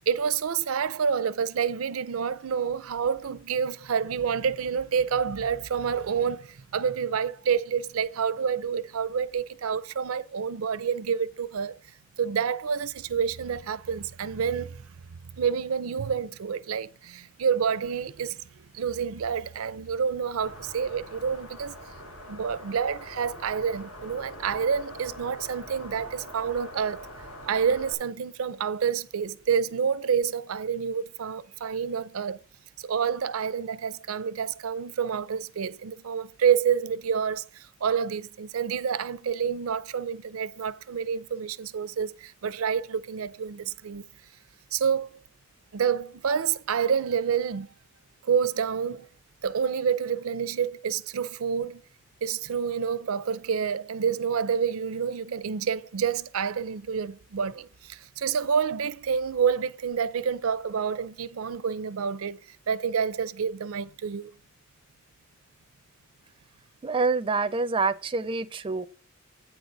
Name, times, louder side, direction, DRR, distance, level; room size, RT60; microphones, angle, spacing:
voice 1, 0.1-11.8 12.2-14.8 15.4-21.8 22.3-27.1 27.5-32.4 32.8-44.1 44.7-45.2 45.7-47.7 48.2-49.1 49.4-51.8 52.2-62.4 62.7-64.3, right 7 dB, 85° right, 0.5 m, -28 dB
sound 1, 20.4-27.9, equal, 90° left, 2.8 m, -44 dB
voice 2, 66.8-68.9, right 4 dB, 25° right, 0.4 m, -26 dB
9.0 x 4.0 x 5.8 m
head